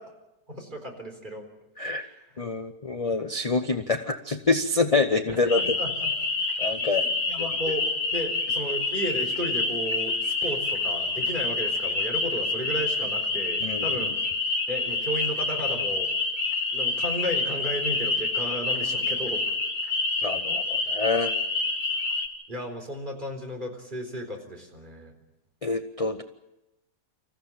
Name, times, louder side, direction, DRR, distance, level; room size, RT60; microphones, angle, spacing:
voice 1, 0.5-1.5 2.0-2.5 5.4-6.1 6.8-7.9 8.1-14.2 14.7-16.1 16.7-19.4 22.5-25.1, equal, 25° right, 3 dB, 4.4 m, -34 dB
voice 2, 2.4-5.6 6.6-7.0 13.6-13.9 20.2-21.3 25.6-26.2, left 3 dB, 35° left, 7 dB, 0.5 m, -26 dB
sound 1, 5.5-22.3, left 3 dB, 60° left, 2.2 m, -27 dB
27.0 x 15.0 x 8.8 m, 0.95 s
omnidirectional pair, 1.9 m